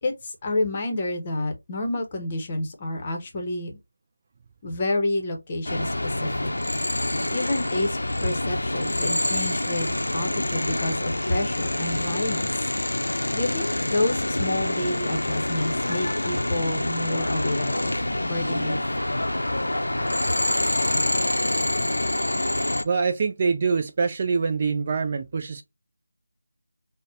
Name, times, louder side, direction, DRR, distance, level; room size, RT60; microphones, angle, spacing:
voice 1, 0.0-3.7 4.6-5.9 6.2-6.5 7.3-12.7 13.3-18.9, left 2 dB, 25° left, 0.8 m, -29 dB
sound 1, 5.6-22.8, left 1 dB, 75° left, 0.5 m, -26 dB
voice 2, 22.8-25.6, right 5 dB, 30° right, 0.4 m, -24 dB
5.2 x 2.1 x 2.6 m
figure-of-eight pair, 165°, 0 cm